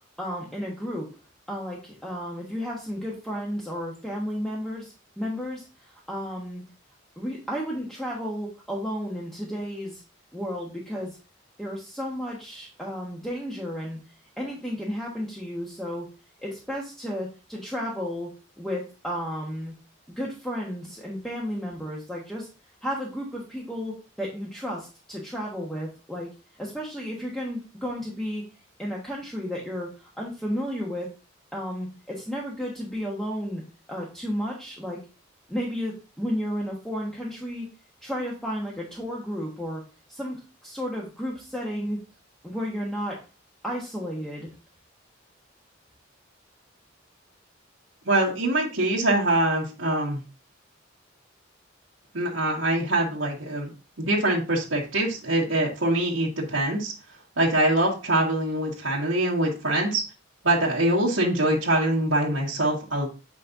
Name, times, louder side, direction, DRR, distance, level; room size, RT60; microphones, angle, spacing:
voice 1, 0.2-1.1 1.5-6.6 7.2-10.0 10.3-11.2 11.6-14.0 14.4-16.1 16.4-19.7 20.2-22.5 22.8-26.3 26.6-28.4 28.8-31.1 31.5-33.6 33.9-35.0 35.5-37.7 38.0-39.8 40.1-42.0 42.4-43.2 43.6-44.5, equal, ahead, -4 dB, 1.3 m, -33 dB
voice 2, 48.1-50.2 52.1-53.7 54.0-56.9 57.4-60.0 60.4-63.1, right 1 dB, 90° right, -7 dB, 1.7 m, -24 dB
8.6 x 5.2 x 2.6 m, 0.33 s
head